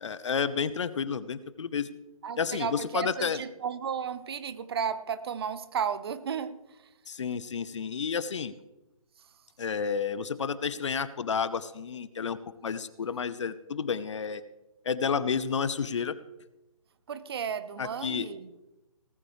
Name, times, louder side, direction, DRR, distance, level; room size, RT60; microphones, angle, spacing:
voice 1, 0.0-1.9 2.4-3.4 7.1-8.5 9.6-14.4 14.8-16.2 17.8-18.3, left 6 dB, 55° left, 16 dB, 0.9 m, -31 dB
voice 2, 2.2-6.6 17.1-18.5, right 7 dB, 45° right, 13 dB, 1.0 m, -33 dB
18.5 x 14.0 x 3.2 m, 0.99 s
figure-of-eight pair, 140°, 18 cm